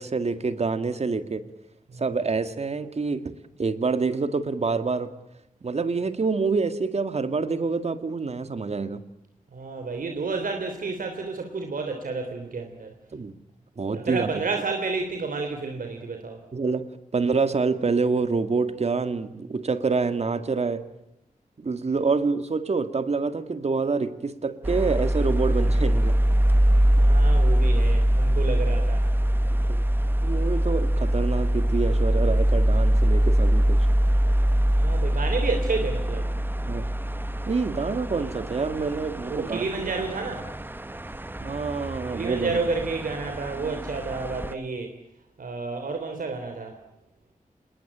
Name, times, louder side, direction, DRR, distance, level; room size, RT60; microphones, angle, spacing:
voice 1, 0.0-1.5 2.0-3.3 3.6-5.1 5.6-9.1 13.1-13.3 13.8-14.3 16.5-20.9 21.6-26.2 29.7-29.9 30.2-33.9 36.7-36.9 37.5-39.9 41.4-42.5, right 4 dB, 50° right, 11 dB, 2.1 m, -27 dB
voice 2, 9.5-12.9 13.9-16.4 27.0-29.0 34.8-36.3 39.4-40.5 42.1-44.9 45.4-46.8, right 4 dB, 80° right, 5 dB, 3.4 m, -30 dB
sound 1, 24.6-44.5, equal, 15° right, 1.1 m, -23 dB
27.5 x 21.5 x 8.7 m, 0.83 s
wide cardioid pair, 130°, 14 cm